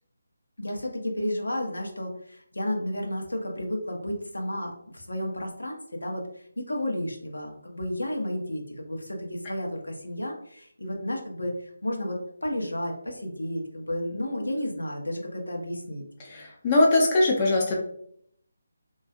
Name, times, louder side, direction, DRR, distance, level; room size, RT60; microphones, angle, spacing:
voice 1, 0.6-16.0, left 1 dB, 70° left, 1 dB, 0.6 m, -32 dB
voice 2, 16.3-17.8, left 2 dB, 25° left, -3 dB, 0.4 m, -21 dB
2.3 x 2.2 x 2.5 m, 0.69 s
figure-of-eight pair, 150°, 0 cm